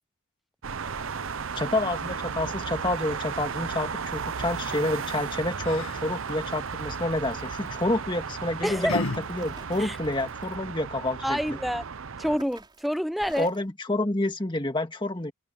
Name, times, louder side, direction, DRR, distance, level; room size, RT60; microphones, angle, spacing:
sound 1, 0.6-12.4, right 6 dB, 65° right, 0.7 m, -34 dB
voice 1, 1.6-11.6 13.4-15.3, left 1 dB, 20° left, 1.8 m, -29 dB
Yell, 5.0-10.5, left 3 dB, 70° left, 1.6 m, -39 dB
sound 2, 7.8-8.0 8.8-8.9 9.2-10.6 11.7-12.0 12.4-13.7, right 2 dB, 20° right, 5.4 m, -48 dB
voice 2, 8.6-9.0 9.8-10.0 11.2-11.8 12.2-13.5, equal, ahead, 0.6 m, -28 dB
open air
head